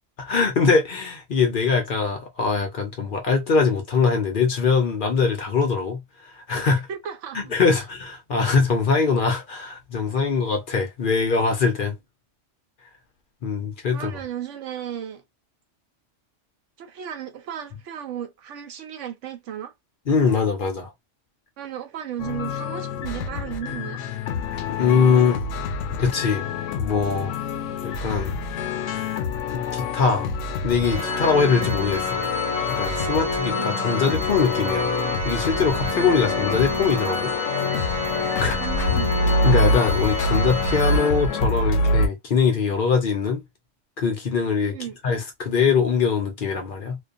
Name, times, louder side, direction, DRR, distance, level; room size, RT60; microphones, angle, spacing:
voice 1, 0.2-6.0 6.3-6.9 7.3-11.9 13.4-14.1 20.1-20.9 24.5-25.4 26.0-26.5 26.8-27.4 27.8-28.4 29.5-30.3 30.6-32.2 32.8-34.9 35.2-37.3 38.4-38.6 39.4-43.4 44.0-44.8 45.0-47.0, left 5 dB, 55° left, 0.7 m, -22 dB
voice 2, 6.9-7.6 13.9-15.2 16.8-19.7 21.6-24.0 33.9-34.0 38.4-39.2 44.7-45.0, right 9 dB, 90° right, 1.0 m, -34 dB
sound 1, 22.2-42.1, left 3 dB, 85° left, 0.9 m, -26 dB
Organ, 30.8-41.6, left 2 dB, 10° right, 0.9 m, -28 dB
2.4 x 2.3 x 2.4 m
omnidirectional pair, 1.2 m